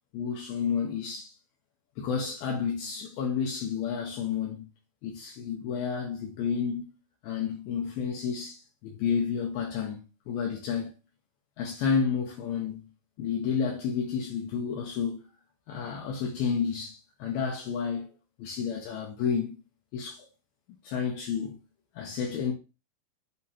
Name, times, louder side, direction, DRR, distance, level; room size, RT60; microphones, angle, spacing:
voice 1, 0.1-1.3 2.0-4.7 5.0-6.9 7.2-10.9 11.6-12.8 13.2-15.2 15.7-18.1 18.4-19.6 19.9-20.3 20.8-21.6 22.0-22.5, left 6 dB, 80° left, 2.5 m, -31 dB
6.2 x 2.9 x 2.8 m
omnidirectional pair, 4.5 m